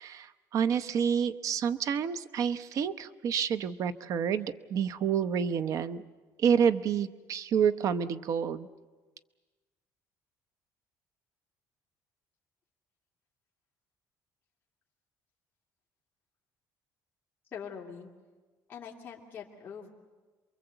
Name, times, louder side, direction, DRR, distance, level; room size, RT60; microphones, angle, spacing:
voice 1, 0.0-6.0 6.4-8.7, right 7 dB, 50° right, 12 dB, 0.8 m, -28 dB
voice 2, 17.5-18.1 18.7-19.9, left 7 dB, 30° left, -3 dB, 2.5 m, -43 dB
28.0 x 22.5 x 8.0 m, 1.3 s
cardioid pair, 160°, 7 cm